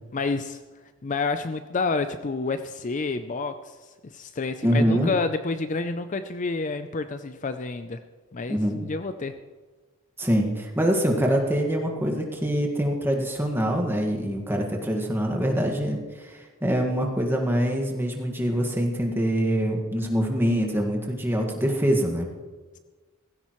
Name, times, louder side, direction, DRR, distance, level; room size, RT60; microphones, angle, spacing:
voice 1, 0.1-0.6 1.0-3.8 4.0-8.0 8.3-9.3, left 3 dB, 35° left, 9 dB, 0.5 m, -29 dB
voice 2, 4.6-5.1 8.5-8.8 10.2-22.3, equal, 10° right, 1 dB, 1.7 m, -24 dB
17.5 x 15.5 x 3.1 m, 1.4 s
head